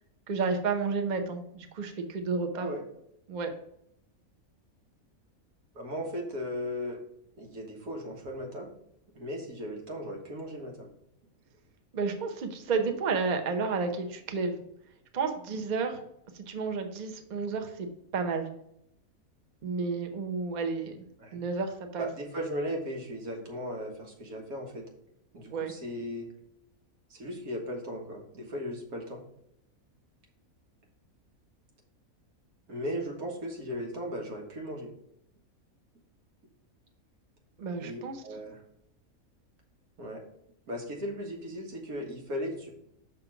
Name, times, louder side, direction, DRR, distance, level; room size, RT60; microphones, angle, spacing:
voice 1, 0.3-2.7 3.3-3.5 11.9-14.6 15.1-16.0 16.3-18.5 19.6-21.0 21.3-22.1 25.5-25.7 37.6-38.2, right 4 dB, 40° right, 5 dB, 0.7 m, -31 dB
voice 2, 5.8-7.0 7.4-8.7 9.2-10.9 21.2-21.4 22.0-24.8 25.3-26.3 27.1-29.2 32.7-34.9 37.8-38.6 40.0-40.2 40.7-42.7, equal, 90° right, 0 dB, 2.0 m, -37 dB
6.0 x 3.8 x 5.8 m, 0.75 s
omnidirectional pair, 1.5 m